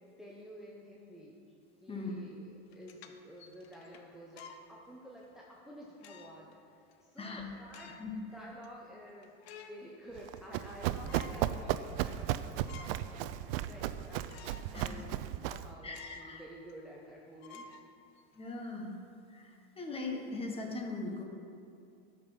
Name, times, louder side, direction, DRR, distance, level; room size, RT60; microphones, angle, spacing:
voice 1, 0.2-1.3 1.8-8.0 8.3-9.3 9.7-15.1 15.4-17.8, equal, ahead, -4 dB, 0.9 m, -51 dB
sound 1, 2.6-4.7 5.2-5.3 6.0-6.5 6.9-7.0 7.6-8.2 8.6-8.7 9.1-9.8 10.2-10.7 11.1-11.4 11.9-12.0 12.4-13.1 13.5-13.6 14.3-14.7 15.1-15.2 15.9-16.4 16.7-16.8 17.4-18.4, left 5 dB, 90° left, 0.9 m, -53 dB
Run, 10.2-15.7, right 12 dB, 65° right, 0.5 m, -35 dB
voice 2, 15.8-16.4 18.3-19.0 19.3-21.2, left 3 dB, 20° left, 1 dB, 1.4 m, -40 dB
12.0 x 5.4 x 5.6 m, 2.5 s
supercardioid pair, 115°, 31 cm